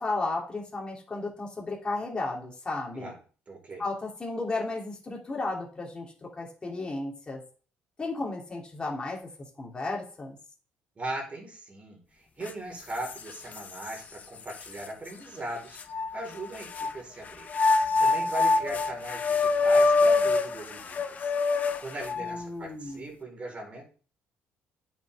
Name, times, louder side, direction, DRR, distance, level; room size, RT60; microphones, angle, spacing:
voice 1, 0.0-3.1 3.8-7.4 8.0-9.2 9.6-10.4 22.2-23.0, left 2 dB, 25° left, -3 dB, 3.0 m, -34 dB
voice 2, 3.5-3.8 11.0-17.5 18.0-23.8, right 1 dB, 30° right, -1 dB, 4.5 m, -39 dB
sound 1, 12.5-12.6 13.0-14.0 14.6-14.7 15.8-16.9 17.5-22.4, left 3 dB, 40° left, 0.9 m, -25 dB
9.3 x 6.1 x 3.6 m, 0.40 s
cardioid pair, 105°, 4 cm